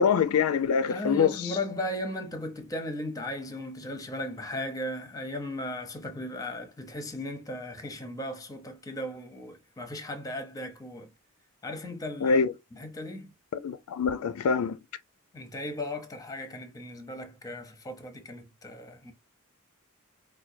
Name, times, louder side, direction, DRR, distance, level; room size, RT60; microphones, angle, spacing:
voice 1, 0.0-1.3 12.2-12.5 13.6-14.8, left 6 dB, 75° left, 0.3 m, -24 dB
voice 2, 0.9-11.1 11.6-12.4 12.7-13.3 15.3-19.1, left 1 dB, 15° left, 0.6 m, -36 dB
4.4 x 2.2 x 2.6 m
head